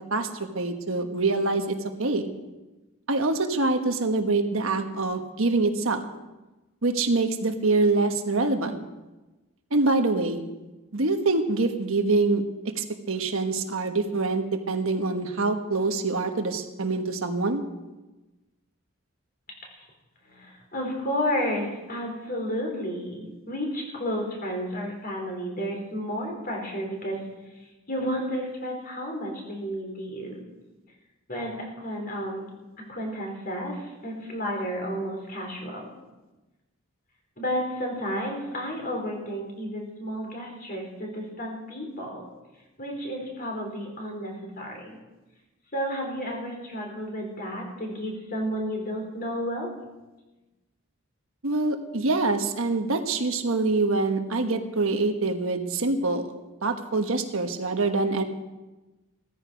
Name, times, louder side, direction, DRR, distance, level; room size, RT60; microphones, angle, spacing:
voice 1, 0.1-2.3 3.1-6.0 6.8-8.8 9.7-10.5 10.9-17.6 51.4-56.3 56.6-58.2, right 3 dB, 70° right, 5 dB, 1.3 m, -25 dB
voice 2, 20.2-27.3 27.9-30.4 31.3-32.4 32.9-35.9 37.4-42.2 42.8-45.0 45.7-49.7, equal, 40° left, 0 dB, 4.1 m, -32 dB
16.5 x 14.0 x 5.2 m, 1.1 s
head